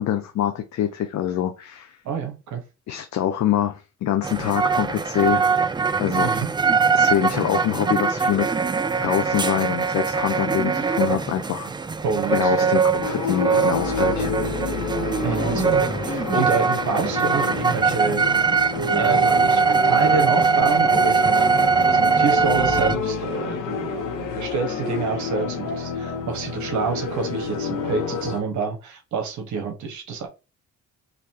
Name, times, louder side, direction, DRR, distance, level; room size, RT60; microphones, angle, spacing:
voice 1, 0.0-2.0 2.9-5.6 6.0-6.4 6.9-11.7 12.3-14.3, left 10 dB, 65° left, 0.7 m, -25 dB
voice 2, 2.0-2.6 6.2-6.5 12.0-12.8 15.2-18.3 18.9-30.3, right 5 dB, 75° right, 1.3 m, -28 dB
sound 1, 4.2-23.0, right 5 dB, 15° right, 0.4 m, -21 dB
sound 2, 13.0-28.4, left 5 dB, 90° left, 1.2 m, -29 dB
sound 3, 13.9-16.6 21.9-22.8 23.8-26.6, right 2 dB, 30° right, 2.0 m, -42 dB
4.1 x 3.1 x 2.8 m
cardioid pair, 90°, 30 cm